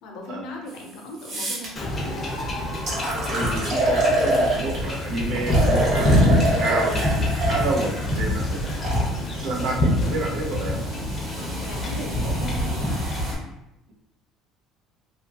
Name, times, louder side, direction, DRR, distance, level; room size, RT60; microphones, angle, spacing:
voice 1, 0.0-2.2 5.1-5.5 7.9-8.4 11.3-13.0, left 1 dB, 70° left, 1 dB, 0.7 m, -38 dB
sound 1, 0.7-0.8 1.2-1.7 2.4-2.5 2.9-4.9 5.5-9.1 9.9-13.3, right 1 dB, 50° right, 1.0 m, -27 dB
Wind / Ocean / Boat Water vehicle, 1.8-13.4, left 1 dB, 30° left, 0.6 m, -25 dB
voice 2, 3.3-8.9 9.3-10.8, right 2 dB, 65° right, 1 dB, 0.6 m, -30 dB
2.7 x 2.4 x 2.8 m, 0.88 s
cardioid pair, 120°, 0 cm